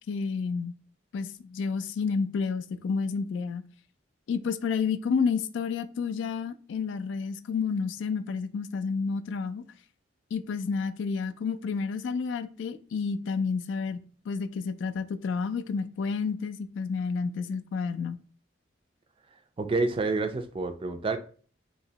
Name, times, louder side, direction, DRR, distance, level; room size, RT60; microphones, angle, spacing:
voice 1, 0.1-0.8 1.1-3.6 4.3-9.6 10.3-18.2, left 5 dB, 75° left, 0.3 m, -30 dB
voice 2, 19.6-21.2, right 3 dB, 30° right, 0.3 m, -28 dB
3.0 x 2.9 x 2.7 m
head